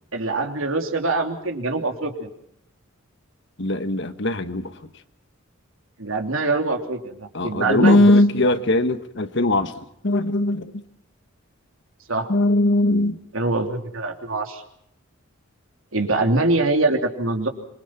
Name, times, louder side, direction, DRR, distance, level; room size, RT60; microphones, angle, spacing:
voice 1, 0.1-2.3 6.0-8.1 12.1-12.3 13.3-14.6 15.9-17.5, right 2 dB, 75° right, 4 dB, 3.2 m, -23 dB
voice 2, 3.6-4.7 7.3-9.7 10.0-10.7 12.3-13.2, left 1 dB, 60° left, 10 dB, 1.6 m, -19 dB
26.0 x 23.5 x 5.9 m, 0.75 s
head